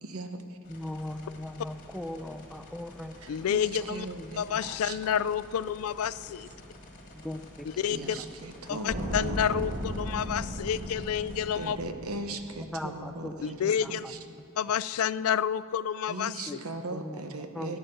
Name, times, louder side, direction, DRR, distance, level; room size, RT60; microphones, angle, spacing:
voice 1, 0.0-0.6 3.2-5.0 7.9-9.4 11.5-13.7 14.1-14.2 16.1-17.8, right 2 dB, 75° right, 7 dB, 0.9 m, -39 dB
sound 1, 0.6-11.7, left 1 dB, 40° left, 1.6 m, -51 dB
voice 2, 0.7-3.2 4.2-4.3 7.1-8.3 8.7-8.8 12.6-13.4 13.8-13.9 14.7-14.8 16.5-16.6 16.9-17.7, left 1 dB, ahead, 6 dB, 0.5 m, -39 dB
voice 3, 3.3-4.1 4.4-6.5 7.7-8.2 8.7-11.8 13.4-14.1 14.6-16.6, left 8 dB, 70° left, 17 dB, 0.3 m, -29 dB
sound 2, 8.9-13.1 13.4-13.5, equal, 40° right, 1.1 m, -36 dB
13.0 x 8.9 x 6.7 m, 2.4 s
head